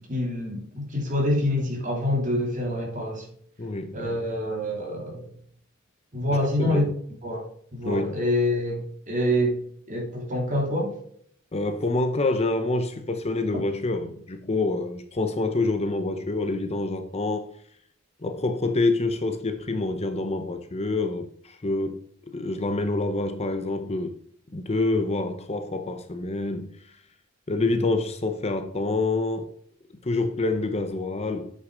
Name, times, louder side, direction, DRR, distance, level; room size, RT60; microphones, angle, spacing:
voice 1, 0.0-3.3 3.9-5.2 6.1-6.9 7.2-8.8 9.1-9.6 9.9-10.9, left 1 dB, 40° right, 3.2 m, -26 dB
voice 2, 3.6-4.2 6.6-6.9 7.8-8.2 11.5-17.5 18.2-22.0 22.3-24.2 24.5-26.7 27.5-29.5 30.0-31.5, left 2 dB, 30° left, 0.7 m, -27 dB
8.2 x 6.5 x 3.9 m
head